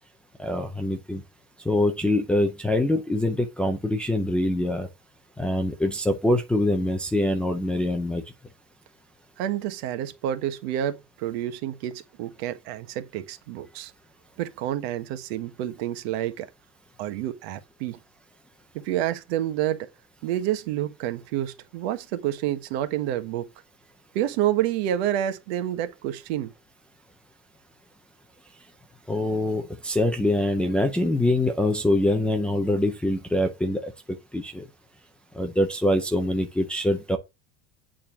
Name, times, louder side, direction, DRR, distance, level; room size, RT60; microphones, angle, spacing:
voice 1, 0.4-1.2 1.7-4.9 5.4-8.2 29.1-33.9 34.3-34.6 35.3-37.2, left 1 dB, 5° left, 0.5 m, -24 dB
voice 2, 9.4-13.9 14.4-16.5 17.0-18.0 18.7-19.9 20.2-23.5 24.1-26.5, right 12 dB, 60° right, 1.4 m, -28 dB
8.9 x 4.4 x 7.2 m
cardioid pair, 180°, 35 cm